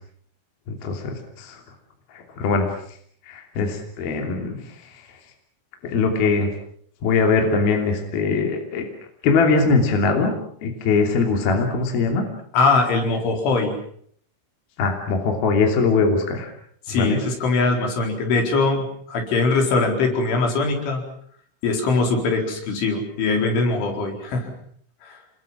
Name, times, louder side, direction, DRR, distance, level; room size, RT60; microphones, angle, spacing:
voice 1, 0.7-1.6 2.4-2.7 3.3-4.6 5.8-6.5 7.0-8.9 9.2-10.3 10.6-12.2 14.8-16.5 16.9-17.2, left 4 dB, 55° left, 3 dB, 4.6 m, -21 dB
voice 2, 12.5-13.7 16.9-21.0 21.6-24.5 25.0-25.2, left 3 dB, 70° left, 3 dB, 6.8 m, -21 dB
28.5 x 22.5 x 7.5 m, 0.64 s
omnidirectional pair, 5.7 m